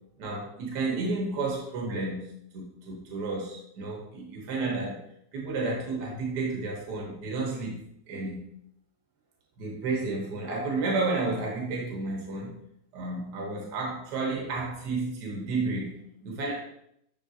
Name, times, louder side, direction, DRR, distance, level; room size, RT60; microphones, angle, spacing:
voice 1, 0.2-5.0 5.3-8.4 9.6-12.6 12.9-16.5, right 3 dB, 75° right, -1 dB, 1.6 m, -31 dB
10.0 x 3.6 x 2.7 m, 0.75 s
omnidirectional pair, 1.8 m